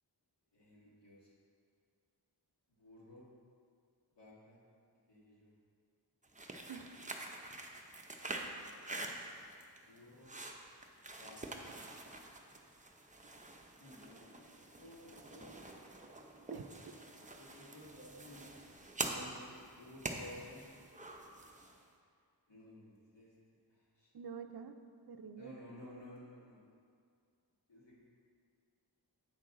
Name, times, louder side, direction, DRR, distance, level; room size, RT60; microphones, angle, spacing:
voice 1, 0.5-1.3 2.7-3.2 4.1-4.6 5.1-5.5 6.3-6.7 7.3-7.4 9.8-10.3 11.2-11.7 13.6-16.6 17.3-18.5 19.0-20.7 22.5-23.3 23.7-24.1 25.4-26.6 27.7-28.0, left 1 dB, 80° left, -7 dB, 2.1 m, -55 dB
sound 1, 6.2-21.8, right 2 dB, 20° right, 0.6 m, -46 dB
voice 2, 16.5-16.9 24.1-24.7 25.1-25.5, right 6 dB, 65° right, 8 dB, 0.5 m, -47 dB
8.7 x 6.1 x 3.8 m, 2.2 s
wide cardioid pair, 65°, 41 cm